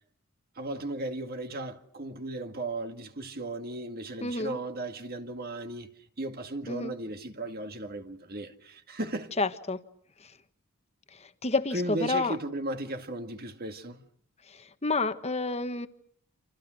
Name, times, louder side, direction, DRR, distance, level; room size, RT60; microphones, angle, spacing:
voice 1, 0.6-5.9 6.2-9.3 11.7-14.0, right 2 dB, 45° right, 2.1 m, -36 dB
voice 2, 4.2-4.6 6.7-6.9 9.4-9.8 11.4-12.3 14.5-15.9, left 3 dB, 30° left, 1.4 m, -29 dB
28.5 x 28.5 x 6.4 m
head